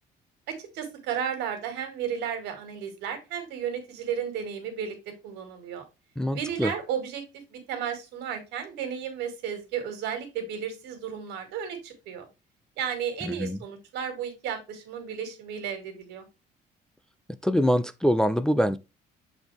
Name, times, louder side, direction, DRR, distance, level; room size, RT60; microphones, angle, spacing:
voice 1, 0.5-5.0 5.2-5.8 6.3-7.2 7.5-12.3 12.8-16.2, right 8 dB, 90° right, 2.1 m, -33 dB
voice 2, 6.2-6.7 13.2-13.6 17.4-18.8, equal, 5° left, 0.4 m, -24 dB
7.0 x 4.1 x 3.3 m
cardioid pair, 110°, 17 cm